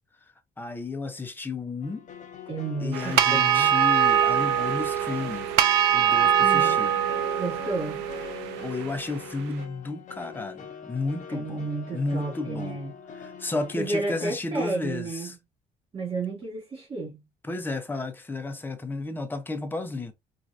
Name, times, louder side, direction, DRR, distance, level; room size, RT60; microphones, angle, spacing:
voice 1, 0.6-2.0 2.8-5.5 5.9-6.9 8.6-11.7 11.9-12.8 13.1-15.4 17.4-20.1, left 3 dB, 10° left, 0.7 m, -32 dB
sound 1, 1.8-14.3, left 7 dB, 45° left, 0.7 m, -43 dB
voice 2, 2.5-3.7 6.4-6.8 7.4-8.1 11.3-12.9 13.8-15.3 15.9-17.2, right 2 dB, 35° right, 2.0 m, -32 dB
sound 2, 2.9-9.3, right 9 dB, 90° right, 0.5 m, -23 dB
4.4 x 2.5 x 2.6 m
cardioid pair, 110°, 17 cm